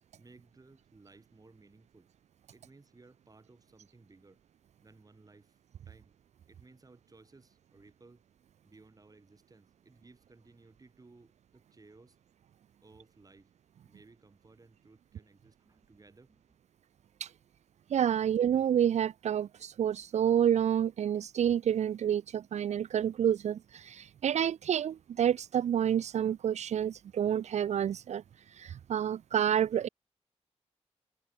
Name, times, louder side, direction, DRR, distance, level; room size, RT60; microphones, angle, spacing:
voice 1, 0.2-2.1 2.5-4.4 4.8-5.6 5.9-6.2 6.5-8.2 8.6-12.2 12.8-13.5 13.8-16.4, right 3 dB, 30° right, 5.7 m, -59 dB
voice 2, 17.9-29.9, right 9 dB, 80° right, 0.4 m, -29 dB
wide cardioid pair, 110°, 12 cm